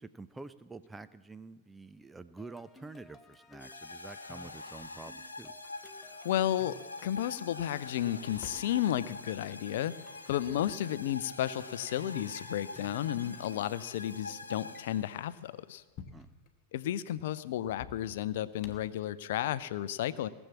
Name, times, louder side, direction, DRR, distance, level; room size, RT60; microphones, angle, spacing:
voice 1, 0.0-5.5 10.4-10.6 16.1-16.3, right 3 dB, 10° right, 13 dB, 0.4 m, -48 dB
sound 1, 2.4-14.7, left 3 dB, 15° left, 1.0 m, -57 dB
sound 2, 3.6-15.4, left 3 dB, 80° left, 0.9 m, -45 dB
Drawer open or close, 4.7-5.9 7.6-8.8 10.1-10.2 11.0-11.2 11.6-12.0 12.3-12.6 13.1-13.2 13.4-13.5 14.5-16.5 17.7-19.0, left 6 dB, 40° left, 1.1 m, -52 dB
voice 2, 6.2-15.8 16.7-20.3, left 12 dB, 55° left, 16 dB, 0.5 m, -33 dB
18.0 x 7.1 x 7.3 m, 1.3 s
figure-of-eight pair, 90°, 0 cm